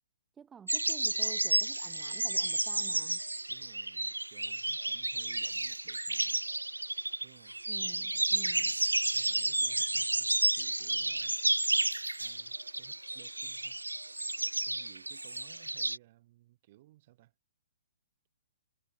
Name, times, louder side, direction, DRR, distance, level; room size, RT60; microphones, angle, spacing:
voice 1, 0.4-3.2 7.7-8.8, right 7 dB, 10° right, 0.5 m, -52 dB
sound 1, 0.7-16.0, right 2 dB, 85° right, 0.6 m, -32 dB
voice 2, 3.5-6.4 7.2-7.6 9.1-11.5 12.2-13.8 14.6-17.3, right 16 dB, 40° right, 7.2 m, -60 dB
figure-of-eight pair, 125°, 0 cm